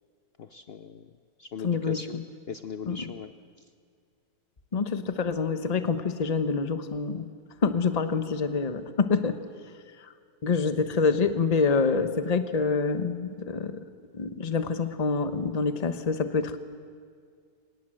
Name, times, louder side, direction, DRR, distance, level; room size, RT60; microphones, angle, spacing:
voice 1, 0.4-1.1 1.4-2.2 2.5-3.3, left 6 dB, 90° left, 10 dB, 0.5 m, -39 dB
voice 2, 1.6-2.2 2.8-3.1 4.7-7.2 7.6-9.4 10.0-10.1 10.4-13.8 14.1-16.6, left 4 dB, 30° left, 10 dB, 0.9 m, -26 dB
26.5 x 18.5 x 7.6 m, 2.1 s
omnidirectional pair, 1.9 m